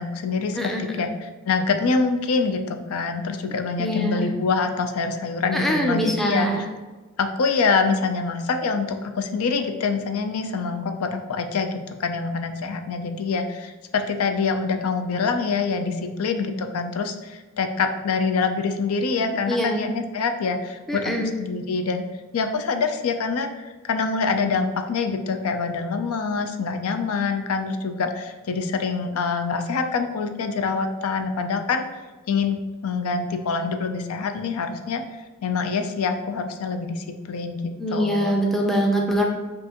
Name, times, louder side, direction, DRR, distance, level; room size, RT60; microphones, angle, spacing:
voice 1, 0.0-0.7 1.0-6.6 7.2-22.1 22.3-31.8 32.3-32.6 32.8-35.0 35.4-38.3, left 4 dB, 80° left, 7 dB, 0.4 m, -25 dB
voice 2, 3.8-4.3 5.5-6.7 19.2-19.8 20.9-21.3 37.8-39.2, equal, ahead, 0 dB, 0.4 m, -23 dB
5.6 x 2.5 x 2.8 m, 1.2 s
head